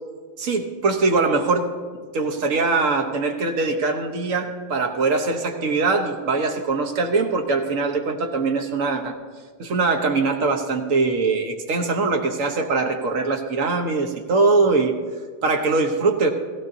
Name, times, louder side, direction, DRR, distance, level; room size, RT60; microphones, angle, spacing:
voice 1, 0.4-1.7 2.1-9.1 9.6-14.9 15.4-16.3, right 3 dB, 50° right, 4 dB, 1.1 m, -22 dB
16.0 x 16.0 x 2.7 m, 1.6 s
omnidirectional pair, 2.3 m